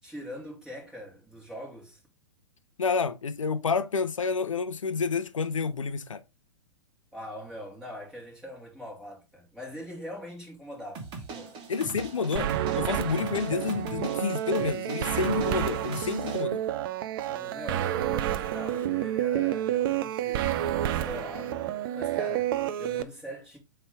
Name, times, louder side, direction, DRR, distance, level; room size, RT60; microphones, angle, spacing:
voice 1, 0.0-2.0 7.1-11.6 17.2-20.5 20.9-21.6 21.9-23.6, equal, 5° right, 3.1 m, -42 dB
voice 2, 2.8-6.2 11.7-16.6, left 5 dB, 75° left, 0.6 m, -29 dB
sound 1, 10.9-16.4, right 4 dB, 30° right, 2.0 m, -40 dB
sound 2, 12.4-23.0, right 12 dB, 45° right, 0.6 m, -29 dB
7.8 x 3.4 x 3.5 m
figure-of-eight pair, 110°, 16 cm